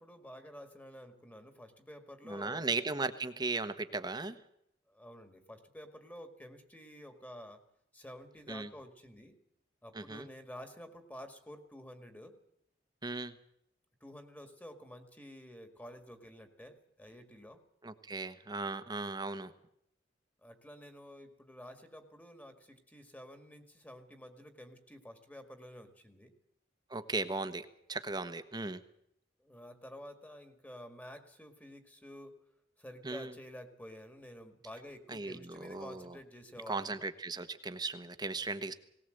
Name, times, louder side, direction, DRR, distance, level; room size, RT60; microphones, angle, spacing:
voice 1, 0.0-2.7 4.9-7.6 7.9-9.4 9.8-12.4 14.0-17.6 20.4-26.4 29.4-37.0, equal, 10° left, 7 dB, 2.0 m, -50 dB
voice 2, 2.2-4.4 8.5-8.7 9.9-10.3 13.0-13.3 17.8-19.5 26.9-28.8 33.0-33.3 35.1-36.2 36.7-38.7, right 3 dB, 20° right, 10 dB, 1.2 m, -37 dB
19.0 x 19.0 x 7.9 m, 0.75 s
head